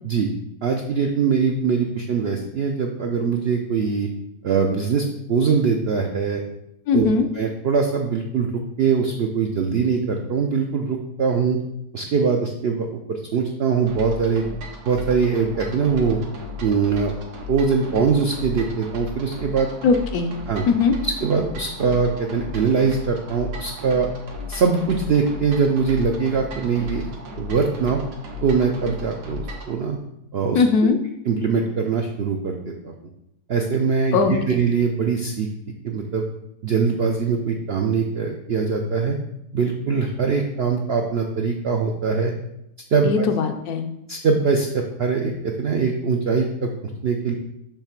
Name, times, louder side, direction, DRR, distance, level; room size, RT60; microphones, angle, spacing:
voice 1, 0.6-4.1 4.4-6.4 6.9-7.1 7.3-8.5 8.8-11.6 11.9-14.4 14.8-16.2 16.6-17.1 17.5-19.7 20.5-20.6 21.0-24.1 24.5-27.1 27.4-28.0 28.4-30.0 30.3-30.9 31.2-32.9 33.5-35.5 35.8-36.2 36.6-39.2 39.5-42.3 42.9-43.2 44.1-46.7 47.0-47.3, right 5 dB, 70° right, 2 dB, 0.6 m, -22 dB
voice 2, 6.9-7.3 19.8-20.4 20.7-21.0 30.5-31.0 34.1-34.6 43.0-43.9, left 5 dB, 70° left, 6 dB, 1.1 m, -19 dB
sound 1, 13.9-29.7, left 2 dB, 90° right, 1.7 m, -35 dB
6.7 x 3.2 x 5.8 m, 0.82 s
omnidirectional pair, 1.7 m